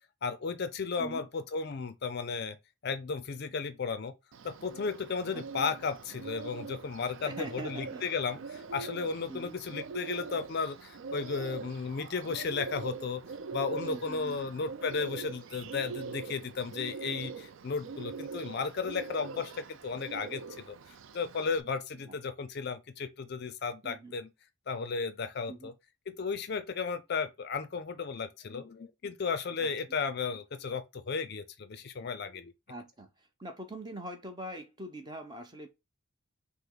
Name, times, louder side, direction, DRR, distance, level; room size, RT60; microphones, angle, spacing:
voice 1, 0.2-2.6 2.8-4.1 4.4-13.2 13.5-20.8 21.1-24.3 24.7-25.7 26.1-32.5, left 5 dB, 50° left, 0.4 m, -34 dB
Bird, 4.3-21.6, right 5 dB, 60° right, 0.4 m, -43 dB
voice 2, 7.2-8.0 9.3-9.6 13.8-14.5 22.0-22.2 23.8-24.2 25.5-25.7 29.6-30.0 32.7-35.7, right 1 dB, 20° right, 0.8 m, -43 dB
5.6 x 2.1 x 3.8 m
head